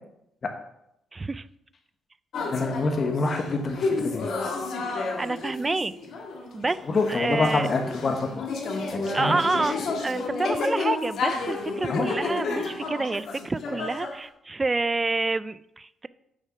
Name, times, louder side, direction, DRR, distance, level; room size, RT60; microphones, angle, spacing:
voice 1, 1.1-1.5 4.9-5.9 6.5-6.8 7.1-7.7 9.1-9.7 10.0-16.1, right 3 dB, 25° right, 16 dB, 0.4 m, -28 dB
sound 1, 2.3-14.2, left 3 dB, 70° left, 1.9 m, -31 dB
voice 2, 2.5-4.3 6.9-8.5 8.9-9.7 11.9-12.1, left 3 dB, 40° left, 4 dB, 1.2 m, -26 dB
6.9 x 5.5 x 5.8 m, 0.79 s
cardioid pair, 90°, 0 cm